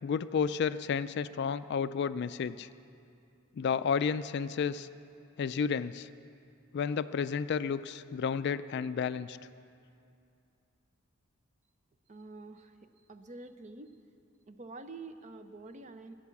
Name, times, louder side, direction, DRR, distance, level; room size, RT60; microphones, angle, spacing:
voice 1, 0.0-2.7 3.5-4.9 5.4-6.1 6.7-9.4, left 6 dB, 50° left, 14 dB, 0.3 m, -31 dB
voice 2, 12.1-14.0 14.5-16.1, right 3 dB, 35° right, 9 dB, 0.6 m, -47 dB
15.5 x 9.1 x 7.1 m, 2.5 s
head